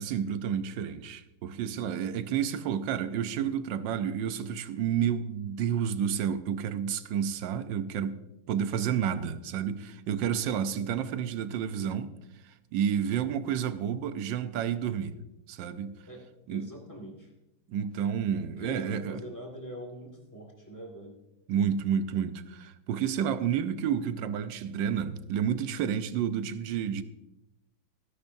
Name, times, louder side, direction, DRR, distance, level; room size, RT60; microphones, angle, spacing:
voice 1, 0.0-8.2 8.5-12.1 12.4-15.1 15.5-15.9 16.5-16.7 17.7-19.2 21.5-27.0, right 8 dB, 75° right, 1.4 m, -30 dB
voice 2, 16.5-17.3 18.3-21.2, equal, 10° left, 1.9 m, -43 dB
18.5 x 10.5 x 2.7 m
omnidirectional pair, 2.1 m